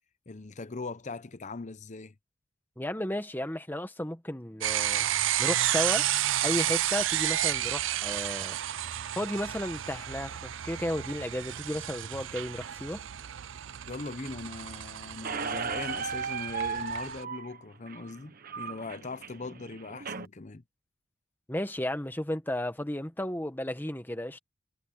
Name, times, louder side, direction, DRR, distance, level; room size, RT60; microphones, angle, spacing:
voice 1, 0.3-2.1 13.9-20.6, left 3 dB, 35° left, 0.8 m, -40 dB
voice 2, 2.8-5.1 5.4-6.1 6.4-8.6 9.1-13.0 21.5-24.4, left 1 dB, 10° left, 1.5 m, -33 dB
sound 1, 4.6-17.2, right 13 dB, 70° right, 0.5 m, -32 dB
Squeak, 15.2-20.2, right 5 dB, 45° right, 1.0 m, -36 dB
head